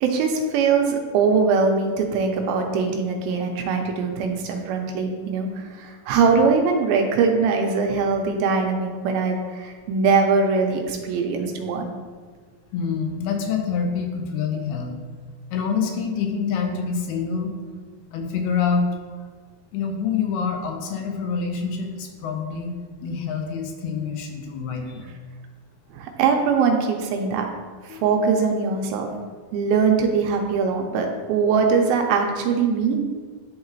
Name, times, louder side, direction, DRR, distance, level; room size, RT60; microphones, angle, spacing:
voice 1, 0.0-11.9 25.9-27.5 27.8-29.1 29.5-33.0, right 5 dB, 85° right, 3 dB, 2.5 m, -22 dB
voice 2, 12.7-14.9 15.5-17.5 18.1-18.9 19.7-25.1 27.9-28.0, left 6 dB, 85° left, 3 dB, 2.7 m, -26 dB
11.0 x 3.7 x 2.9 m, 1.5 s
omnidirectional pair, 4.3 m